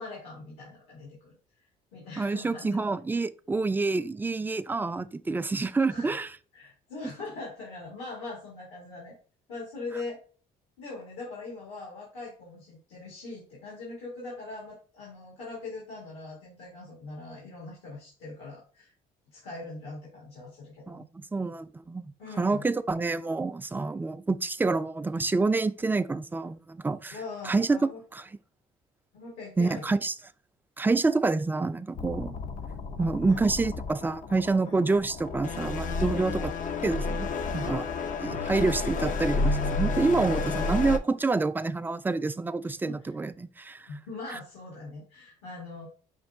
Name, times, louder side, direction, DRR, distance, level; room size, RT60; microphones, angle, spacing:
voice 1, 0.0-1.4 1.9-2.8 5.9-6.2 6.5-9.1 9.5-10.2 10.8-18.9 19.3-21.0 22.2-22.6 27.1-28.0 29.1-29.9 33.3-33.5 34.6-34.8 36.0-36.3 37.5-37.8 42.9-43.0 43.9-45.9, left 3 dB, 85° left, 1.8 m, -41 dB
voice 2, 2.2-6.3 20.9-22.1 22.4-27.2 27.4-28.2 29.6-30.1 30.8-32.3 33.0-36.5 36.8-37.3 37.5-37.8 38.2-43.9, right 3 dB, 10° right, 0.3 m, -27 dB
sound 1, 31.9-41.0, left 3 dB, 50° left, 0.5 m, -31 dB
5.3 x 2.3 x 3.5 m
supercardioid pair, 70°, 17 cm